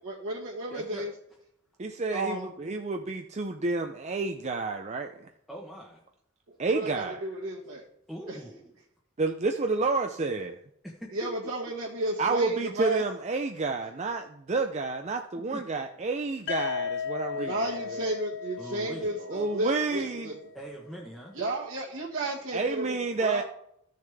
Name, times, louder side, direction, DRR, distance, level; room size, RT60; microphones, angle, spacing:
voice 1, 0.0-1.1 2.1-2.4 6.5-7.8 8.3-8.4 11.1-13.0 17.3-20.5 21.3-23.4, right 1 dB, 65° right, 1.8 m, -33 dB
voice 2, 0.7-1.1 5.5-6.0 7.2-7.4 8.1-8.7 10.8-11.1 15.5-15.6 16.6-16.7 18.6-19.1 20.5-21.4, right 1 dB, ahead, 1.0 m, -42 dB
voice 3, 1.8-5.3 6.6-7.2 9.2-10.6 12.2-17.5 17.9-18.0 19.3-20.3 22.5-23.4, right 3 dB, 30° right, 0.5 m, -30 dB
sound 1, 16.5-20.4, left 7 dB, 55° left, 0.7 m, -36 dB
14.0 x 6.5 x 3.5 m
head